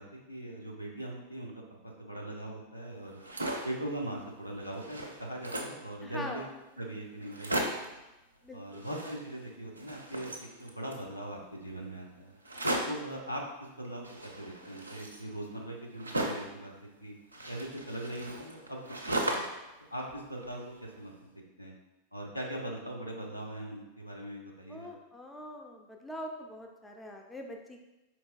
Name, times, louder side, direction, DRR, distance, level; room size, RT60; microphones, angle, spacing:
voice 1, 0.0-3.2 3.6-6.5 6.8-7.7 8.5-12.3 12.9-16.7 17.0-17.1 17.5-18.8 19.2-19.4 19.9-21.7 22.1-24.9, right 1 dB, 90° left, -1 dB, 0.5 m, -40 dB
Jump Landing, 3.1-3.8 4.3-4.4 4.6-5.8 6.5-6.6 6.8-6.9 7.2-8.0 8.7-9.5 9.7-11.1 12.4-13.1 14.0-16.6 17.3-19.7 20.0-20.9, right 1 dB, 85° right, 0.4 m, -36 dB
voice 2, 6.0-6.5 8.4-8.8 24.7-27.8, left 1 dB, 10° left, 1 dB, 0.4 m, -43 dB
4.4 x 2.9 x 2.2 m, 1.0 s
figure-of-eight pair, 90°, 0 cm